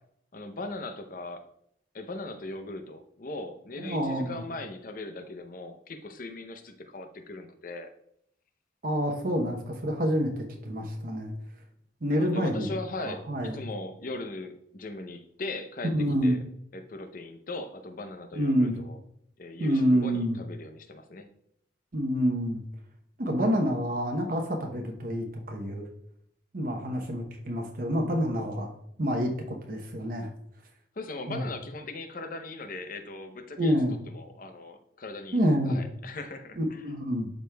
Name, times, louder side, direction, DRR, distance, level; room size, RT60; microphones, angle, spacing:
voice 1, 0.3-1.5 1.9-7.9 12.1-16.4 16.7-19.0 19.4-21.3 31.0-33.8 34.1-36.8, left 2 dB, 45° left, 7 dB, 0.6 m, -39 dB
voice 2, 3.8-4.4 8.8-11.3 12.0-12.7 13.0-13.5 15.9-16.4 18.3-18.7 19.6-20.4 21.9-22.6 23.2-25.9 26.5-28.7 29.0-30.3 31.3-31.4 33.6-33.9 35.3-35.8 36.6-37.3, equal, 45° right, 2 dB, 0.8 m, -27 dB
12.0 x 5.1 x 2.3 m, 0.73 s
head